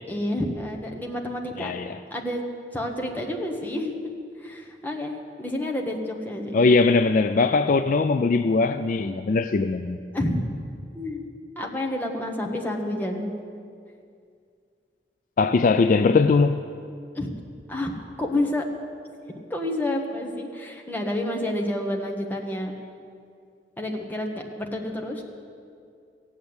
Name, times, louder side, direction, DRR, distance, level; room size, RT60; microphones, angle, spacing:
voice 1, 0.1-1.7 2.1-2.4 2.7-4.1 4.4-6.7 10.1-10.4 10.9-11.2 11.6-13.3 17.1-17.3 17.7-17.9 18.2-18.6 19.5-22.7 23.8-25.2, left 1 dB, 10° left, 1 dB, 1.3 m, -29 dB
voice 2, 1.6-2.0 6.5-10.0 15.4-16.6, left 4 dB, 50° left, 10 dB, 0.4 m, -20 dB
15.5 x 8.7 x 8.0 m, 2.3 s
head